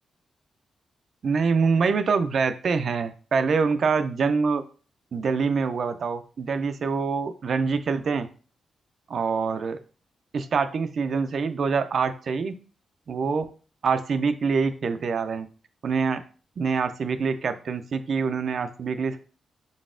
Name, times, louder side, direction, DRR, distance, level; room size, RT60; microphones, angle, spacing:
voice 1, 1.2-4.6 5.1-8.3 9.1-9.8 10.3-12.5 13.1-13.5 13.8-15.5 15.8-16.2 16.6-19.2, right 5 dB, 65° right, 10 dB, 0.4 m, -25 dB
3.9 x 3.5 x 2.5 m, 0.38 s
cardioid pair, 80°, 0 cm